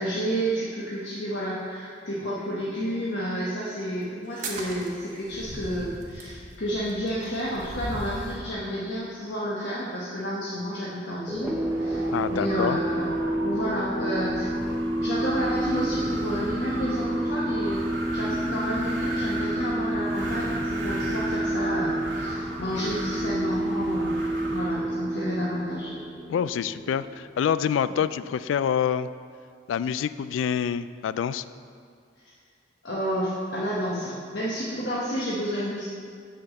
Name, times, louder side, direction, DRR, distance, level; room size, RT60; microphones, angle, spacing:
voice 1, 0.0-13.1 13.4-14.5 15.0-17.8 18.1-24.2 24.5-25.9 32.8-35.9, equal, 60° left, -7 dB, 1.1 m, -30 dB
sound 1, 4.3-8.5, right 1 dB, 45° right, 1.1 m, -38 dB
sound 2, 11.3-27.6, right 1 dB, 10° right, 0.7 m, -29 dB
Wind, 11.3-25.0, right 1 dB, 90° right, 2.1 m, -36 dB
voice 2, 12.1-12.8 26.3-29.1 29.7-31.4, left 8 dB, 90° left, 16 dB, 0.3 m, -26 dB
6.5 x 5.7 x 7.2 m, 2.2 s
head